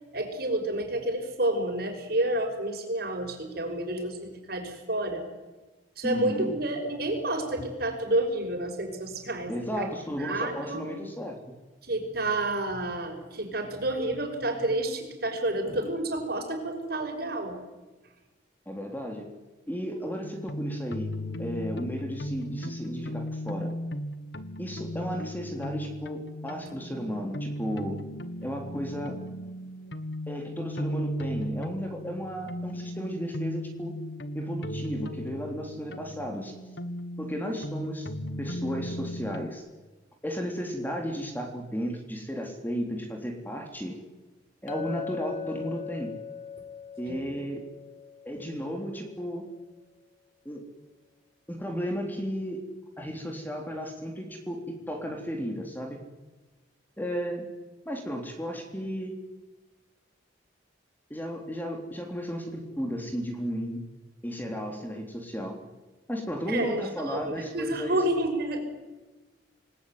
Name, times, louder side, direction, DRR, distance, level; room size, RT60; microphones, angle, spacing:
voice 1, 0.1-5.3 6.0-9.9 10.1-10.9 11.8-17.6 47.0-47.2 66.5-68.6, right 1 dB, 55° right, 4 dB, 5.9 m, -30 dB
voice 2, 6.0-6.5 9.5-11.4 18.7-19.3 19.7-21.1 21.4-23.7 24.6-28.0 28.4-29.2 30.3-34.0 34.3-36.5 37.2-38.1 38.4-39.6 40.2-44.0 44.6-46.1 47.0-47.6 48.3-49.5 50.5-50.6 51.5-52.6 53.0-56.0 57.0-57.5 57.9-59.2 61.1-63.8 64.2-65.6 66.1-68.0, equal, 10° left, 3 dB, 3.6 m, -34 dB
sound 1, 20.2-39.5, equal, 65° left, 1.6 m, -36 dB
Chink clink, 44.7-49.1, left 6 dB, 40° left, 2.4 m, -40 dB
27.5 x 20.5 x 9.6 m, 1.2 s
head